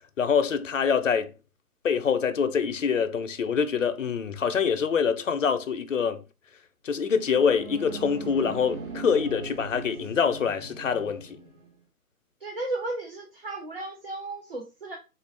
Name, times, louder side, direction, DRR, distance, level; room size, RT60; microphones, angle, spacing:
voice 1, 0.2-1.3 1.8-6.2 6.8-11.4, left 6 dB, 60° left, 0.5 m, -25 dB
sound 1, 7.1-11.7, right 3 dB, 65° right, 1.2 m, -40 dB
voice 2, 12.4-15.0, right 2 dB, 40° right, 0.6 m, -34 dB
3.7 x 2.4 x 3.3 m
figure-of-eight pair, 165°, 45 cm